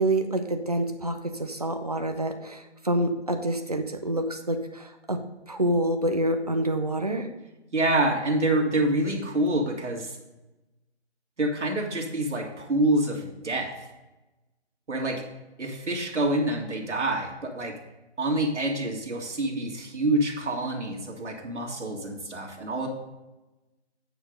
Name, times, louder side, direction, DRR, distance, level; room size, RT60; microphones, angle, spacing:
voice 1, 0.0-5.2 5.5-7.3, right 1 dB, 35° right, 6 dB, 0.6 m, -27 dB
voice 2, 7.7-10.2 11.4-13.7 14.9-15.2 15.6-17.7 18.2-22.9, right 1 dB, 85° right, -1 dB, 2.1 m, -27 dB
8.8 x 4.8 x 5.1 m, 1.0 s
hypercardioid pair, 180°, 34 cm